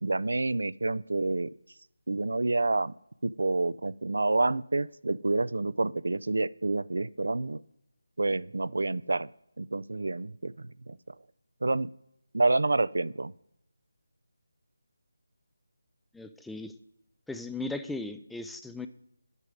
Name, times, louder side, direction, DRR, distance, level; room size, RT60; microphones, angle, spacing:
voice 1, 0.0-1.5 2.1-2.9 3.2-7.6 8.2-9.3 9.6-10.5 10.9-11.1 11.6-11.9 12.3-13.3, right 2 dB, 75° right, 19 dB, 0.4 m, -28 dB
voice 2, 16.1-16.7 17.3-18.9, left 2 dB, ahead, 9 dB, 0.4 m, -37 dB
9.6 x 8.2 x 5.1 m, 0.82 s
figure-of-eight pair, 170°, 0 cm